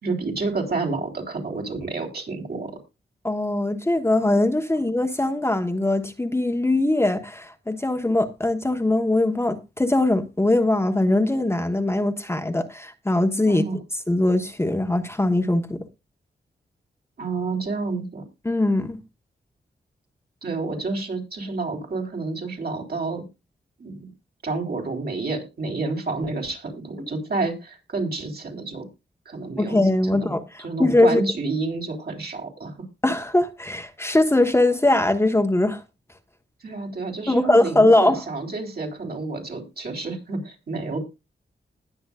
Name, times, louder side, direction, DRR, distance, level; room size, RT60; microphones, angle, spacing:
voice 1, 0.0-2.8 13.5-13.8 17.2-18.2 20.4-23.2 23.8-24.1 24.4-28.9 29.3-29.8 30.1-30.3 30.6-32.7 36.6-41.0, right 3 dB, 60° right, 4.1 m, -29 dB
voice 2, 3.2-13.6 14.1-15.8 18.4-19.0 27.0-27.1 29.6-31.2 33.0-35.8 37.3-38.2, left 2 dB, 15° left, 1.2 m, -21 dB
20.0 x 7.0 x 2.5 m
wide cardioid pair, 100°, 18 cm